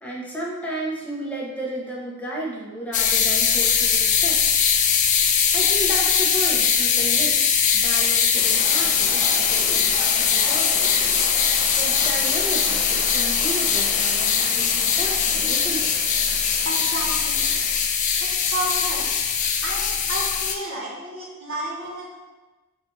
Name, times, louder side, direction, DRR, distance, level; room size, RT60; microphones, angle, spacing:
voice 1, 0.0-4.5 5.5-10.9 11.4-15.9, right 1 dB, 5° left, -5 dB, 0.8 m, -33 dB
sound 1, 2.9-20.5, left 7 dB, 35° left, 0.3 m, -21 dB
sound 2, 8.4-17.8, right 1 dB, 20° right, 0.5 m, -38 dB
voice 2, 16.6-17.5 18.2-19.1 19.6-22.2, right 1 dB, 65° right, -3 dB, 1.2 m, -31 dB
4.2 x 2.5 x 4.5 m, 1.2 s
head